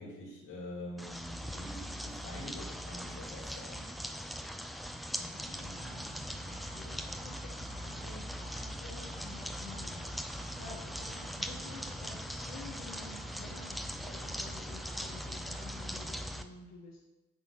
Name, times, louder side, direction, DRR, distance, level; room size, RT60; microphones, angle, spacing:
voice 1, 0.0-3.9, left 1 dB, 85° left, -4 dB, 3.3 m, -45 dB
sound 1, 1.0-16.4, equal, ahead, 0.6 m, -41 dB
voice 2, 5.2-6.2 6.4-13.8 14.0-17.0, left 3 dB, 60° left, -5 dB, 1.8 m, -51 dB
sound 2, 5.4-16.1, right 1 dB, 65° right, 2.5 m, -51 dB
9.2 x 3.9 x 6.2 m, 1.1 s
cardioid pair, 90°, 30 cm